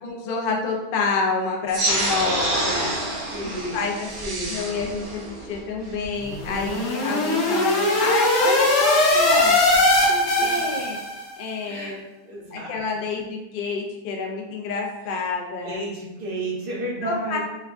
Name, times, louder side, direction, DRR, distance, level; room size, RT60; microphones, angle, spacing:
voice 1, 0.0-2.9 3.4-4.1 4.5-9.6 10.1-11.0 11.4-12.0 12.5-15.8 17.0-17.4, left 4 dB, 85° left, 0 dB, 0.4 m, -28 dB
sound 1, 1.7-6.7, right 1 dB, 75° right, 0.4 m, -27 dB
voice 2, 3.3-3.9 4.2-4.6 10.4-10.5 11.6-11.9 12.2-12.7 15.6-17.4, right 1 dB, 40° right, -5 dB, 0.9 m, -32 dB
sound 2, 6.3-11.3, left 1 dB, 55° left, 0.9 m, -20 dB
4.4 x 2.3 x 2.5 m, 1.0 s
omnidirectional pair, 1.7 m